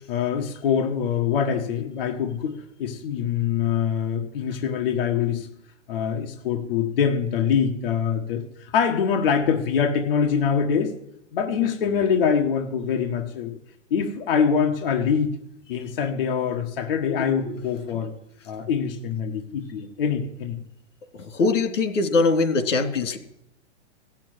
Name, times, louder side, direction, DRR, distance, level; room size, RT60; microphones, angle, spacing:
voice 1, 0.1-5.5 5.9-10.9 11.3-13.6 13.9-15.3 15.7-18.1 18.5-20.5, left 7 dB, 50° left, 3 dB, 1.6 m, -24 dB
voice 2, 21.1-23.2, left 3 dB, 85° left, 6 dB, 3.1 m, -22 dB
15.5 x 7.5 x 9.2 m, 0.77 s
supercardioid pair, 180°, 37 cm